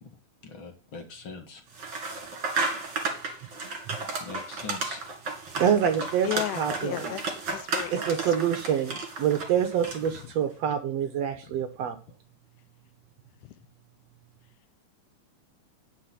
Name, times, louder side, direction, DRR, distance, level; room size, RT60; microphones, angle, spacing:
voice 1, 0.4-1.6 4.2-5.0, left 5 dB, 45° left, 2.2 m, -42 dB
sound 1, 1.7-10.2, right 3 dB, 40° right, 2.8 m, -33 dB
voice 2, 5.6-7.1 7.9-12.0, right 8 dB, 65° right, 1.8 m, -26 dB
voice 3, 6.2-7.2 7.5-8.0, left 16 dB, 85° left, 2.2 m, -33 dB
9.9 x 6.0 x 5.7 m
omnidirectional pair, 3.7 m